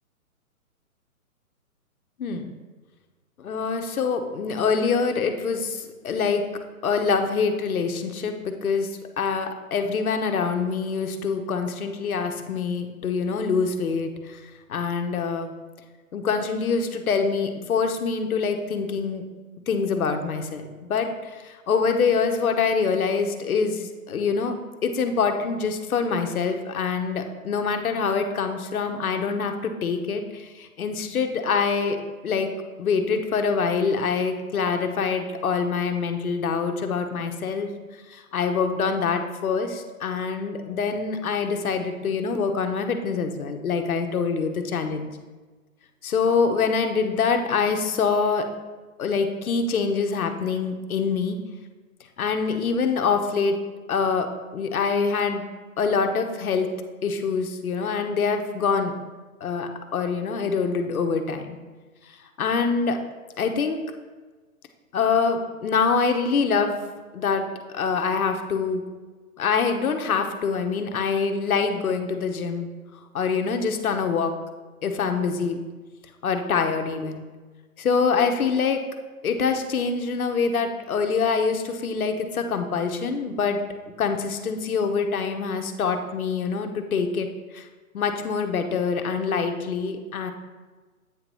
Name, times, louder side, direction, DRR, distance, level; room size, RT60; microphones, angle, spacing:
voice 1, 3.4-6.4 6.8-8.9 9.2-14.4 14.7-15.5 16.1-19.2 19.7-24.6 24.8-32.5 32.8-37.7 38.1-45.1 46.0-48.5 49.0-51.4 52.2-53.6 53.9-54.3 54.5-55.4 55.8-56.7 57.0-58.9 59.4-61.6 62.4-63.0 63.4-63.8 64.9-66.8 67.1-67.4 67.7-68.8 69.4-72.7 73.1-74.3 74.8-75.6 76.2-77.2 77.8-78.8 79.2-83.6 84.0-87.3 87.5-87.7 87.9-90.3, left 5 dB, 70° left, 6 dB, 1.0 m, -25 dB
8.7 x 3.0 x 5.4 m, 1.3 s
hypercardioid pair, 160°, 45 cm